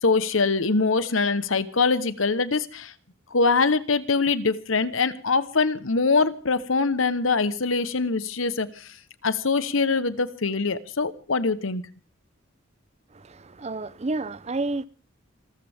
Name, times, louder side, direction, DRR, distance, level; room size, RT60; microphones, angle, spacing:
voice 1, 0.0-2.9 3.3-9.0 9.2-11.9, left 4 dB, 75° left, 1.2 m, -23 dB
voice 2, 13.1-14.9, right 2 dB, 30° right, 0.7 m, -30 dB
26.5 x 13.5 x 3.6 m
head